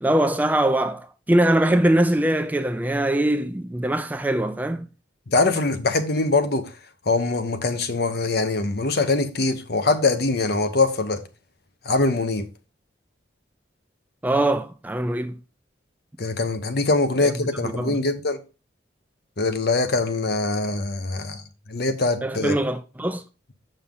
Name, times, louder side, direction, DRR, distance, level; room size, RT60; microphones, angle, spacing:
voice 1, 0.0-4.9 14.2-15.4 17.2-17.3 17.6-18.0 22.2-23.2, right 1 dB, 10° right, 0.3 m, -22 dB
voice 2, 5.3-6.7 7.1-11.2 11.8-12.5 16.2-18.4 19.4-21.4 21.7-22.6, left 3 dB, 55° left, 0.9 m, -23 dB
7.1 x 5.5 x 3.7 m
head